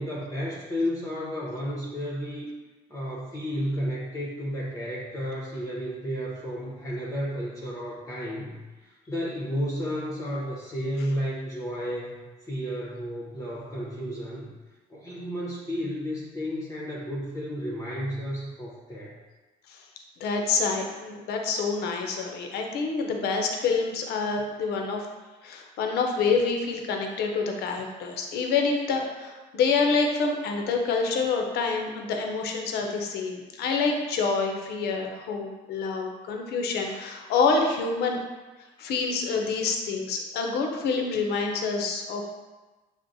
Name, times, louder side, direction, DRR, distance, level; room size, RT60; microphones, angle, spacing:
voice 1, 0.0-2.5 2.9-14.5 14.9-19.2, equal, 20° left, -6 dB, 0.7 m, -32 dB
voice 2, 20.2-25.1 25.4-38.2 38.8-42.2, left 4 dB, 75° left, 2 dB, 0.6 m, -27 dB
6.1 x 2.1 x 2.6 m, 1.2 s
cardioid pair, 110°, 17 cm